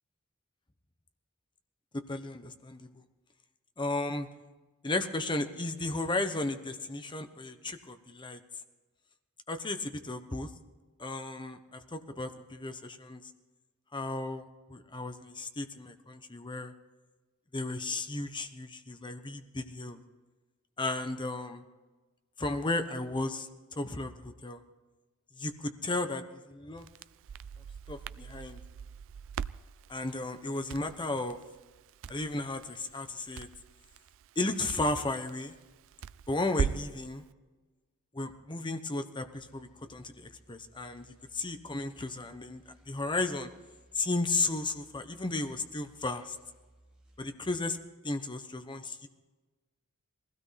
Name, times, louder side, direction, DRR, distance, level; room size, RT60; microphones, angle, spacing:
voice 1, 2.1-2.9 3.8-4.3 4.8-8.4 9.5-10.5 11.0-13.2 13.9-16.7 17.5-20.0 20.8-21.6 22.4-23.5 23.8-24.6 25.4-26.9 27.9-28.6 29.9-31.4 32.1-33.5 34.4-35.5 36.3-37.2 38.1-41.1 41.3-43.5 43.9-46.4 47.2-47.8 48.0-49.1, left 2 dB, 20° left, 8 dB, 1.0 m, -34 dB
Crackle, 26.8-37.0, right 7 dB, 60° right, 0.4 m, -41 dB
sound 1, 39.3-47.2, right 1 dB, 5° right, 6.4 m, -63 dB
20.5 x 16.0 x 4.2 m, 1.2 s
head